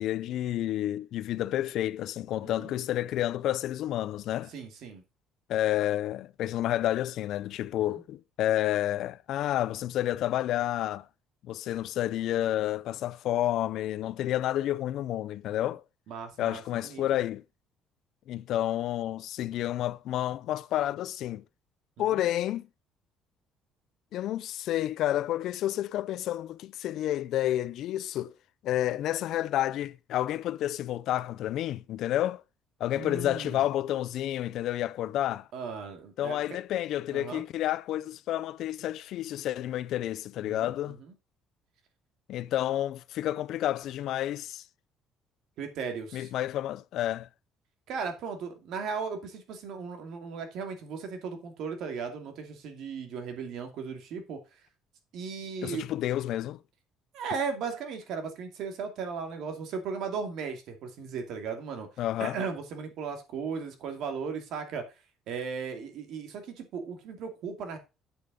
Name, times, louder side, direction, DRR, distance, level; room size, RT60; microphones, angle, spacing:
voice 1, 0.0-4.5 5.5-11.1 11.5-15.8 16.4-17.4 18.3-21.4 22.0-22.7 24.1-28.3 28.6-32.4 32.8-35.5 36.2-41.0 42.3-44.6 46.1-47.3 55.6-56.6 62.0-62.4, left 13 dB, 65° left, 0.5 m, -30 dB
voice 2, 2.4-2.7 4.5-5.0 7.9-8.0 16.1-17.2 22.0-22.3 32.9-33.6 35.5-36.4 37.1-37.4 40.5-40.7 45.6-46.3 47.9-54.4 55.1-55.9 57.1-61.9 62.2-64.8 65.3-67.8, right 5 dB, 65° right, 2.6 m, -36 dB
8.8 x 6.9 x 5.2 m
cardioid pair, 155°, 0 cm